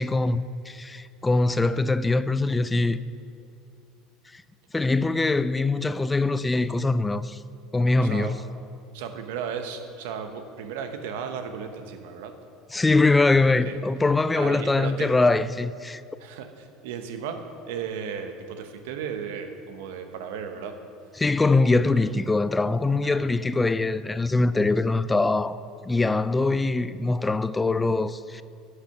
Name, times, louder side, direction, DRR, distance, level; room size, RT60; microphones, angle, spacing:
voice 1, 0.0-3.0 4.3-4.4 4.7-7.4 7.7-8.3 12.7-16.0 21.2-25.6 25.8-28.4, left 3 dB, 15° left, 0.4 m, -23 dB
voice 2, 8.0-8.4 8.9-12.4 13.6-13.8 14.3-15.1 16.2-20.8 21.6-22.2 23.0-23.2, right 7 dB, 75° right, 1.0 m, -35 dB
11.5 x 6.6 x 5.8 m
hypercardioid pair, 80°, 0 cm